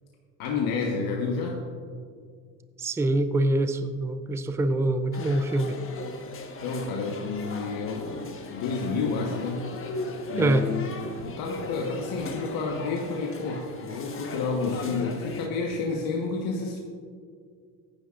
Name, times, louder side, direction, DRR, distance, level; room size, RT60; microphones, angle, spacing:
voice 1, 0.4-1.6 6.6-8.1 8.5-9.7 10.3-10.9 11.2-16.8, left 4 dB, 60° left, 0 dB, 1.4 m, -30 dB
voice 2, 2.8-5.8 10.4-10.7, right 2 dB, 5° right, 10 dB, 0.4 m, -25 dB
sound 1, 5.1-15.5, left 2 dB, 30° left, 1.4 m, -38 dB
14.5 x 10.0 x 2.5 m, 2.1 s
supercardioid pair, 90°, 40 cm